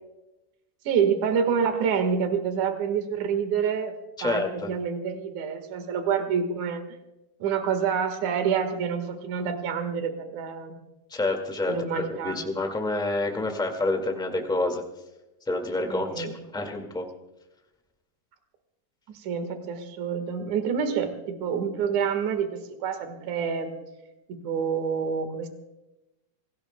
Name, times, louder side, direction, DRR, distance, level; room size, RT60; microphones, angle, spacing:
voice 1, 0.8-3.9 4.2-6.8 7.4-10.8 11.6-12.4 15.9-16.3 19.1-23.7 24.3-25.5, right 7 dB, 65° right, 8 dB, 2.9 m, -27 dB
voice 2, 4.2-4.7 11.1-14.8 15.5-16.3 16.5-17.0, left 2 dB, 5° left, 3 dB, 0.7 m, -28 dB
26.0 x 18.5 x 2.2 m, 0.99 s
omnidirectional pair, 3.8 m